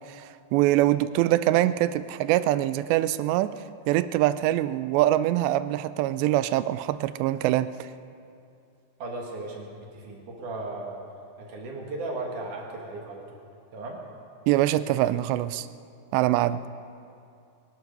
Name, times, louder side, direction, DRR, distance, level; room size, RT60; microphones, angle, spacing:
voice 1, 0.1-3.6 3.9-7.9 14.5-15.7 16.1-16.6, right 14 dB, 90° right, 14 dB, 2.8 m, -24 dB
voice 2, 9.0-11.0 11.4-13.4 13.7-14.0 16.4-16.5, right 2 dB, 55° right, -1 dB, 2.8 m, -36 dB
23.0 x 12.0 x 5.3 m, 2.5 s
omnidirectional pair, 4.9 m